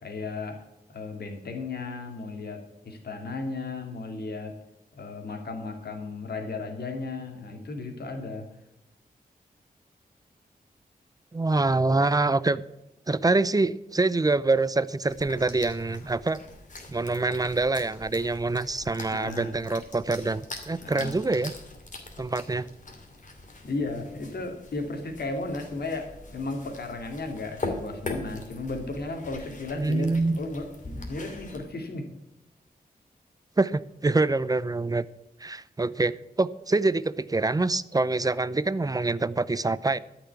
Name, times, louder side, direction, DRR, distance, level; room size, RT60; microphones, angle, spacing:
voice 1, 0.0-4.6 4.9-8.5 19.1-19.6 20.8-21.1 23.6-30.1 30.4-30.7 31.1-32.1, left 3 dB, 80° left, 3 dB, 2.4 m, -35 dB
voice 2, 11.3-12.6 13.1-16.4 16.9-21.5 22.2-22.7 29.8-30.4 33.6-35.0 35.4-40.0, right 3 dB, 25° right, 17 dB, 0.5 m, -25 dB
Cat Eating, 15.0-31.6, left 2 dB, 55° left, 2.6 m, -42 dB
13.5 x 6.0 x 8.4 m, 0.90 s
wide cardioid pair, 75°, 16 cm